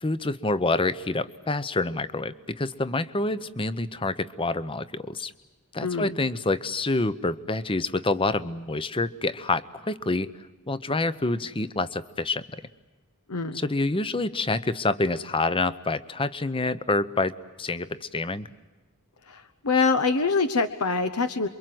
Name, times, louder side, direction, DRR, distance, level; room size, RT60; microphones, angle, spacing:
voice 1, 0.0-5.3 5.7-10.3 10.7-12.4 13.5-17.3 17.6-18.5, left 2 dB, 25° left, 15 dB, 0.8 m, -27 dB
voice 2, 5.8-6.1 13.3-13.6 19.3-21.5, left 4 dB, 75° left, 10 dB, 1.0 m, -25 dB
28.0 x 24.0 x 7.8 m, 1.2 s
head